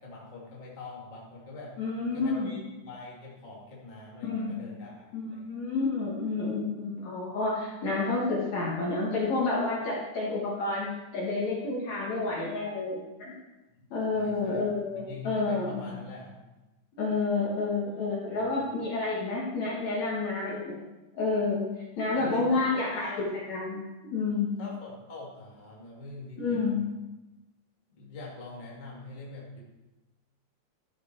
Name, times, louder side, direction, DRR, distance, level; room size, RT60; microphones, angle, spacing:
voice 1, 0.0-1.7 2.1-5.5 13.8-13.9 14.1-14.6 15.0-16.4 22.1-23.2 24.6-26.9 27.9-29.6, left 3 dB, 25° left, -5 dB, 1.0 m, -44 dB
voice 2, 1.8-2.5 4.2-4.6 5.1-10.9 11.1-13.3 13.9-16.0 17.0-20.8 21.2-21.6 22.0-23.8 24.1-24.6 26.4-26.9, left 3 dB, 55° left, -4 dB, 2.2 m, -29 dB
13.0 x 6.3 x 4.6 m, 1.1 s
omnidirectional pair, 5.0 m